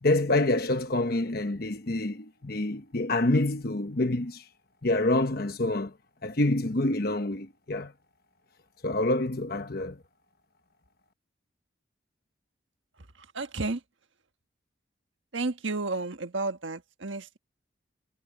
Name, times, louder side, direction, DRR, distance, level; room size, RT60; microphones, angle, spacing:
voice 1, 0.0-4.5 4.8-6.0 6.2-7.9 8.8-10.0, left 2 dB, 55° left, 1.1 m, -27 dB
voice 2, 13.2-13.8 15.3-17.4, right 3 dB, 80° right, 1.4 m, -32 dB
head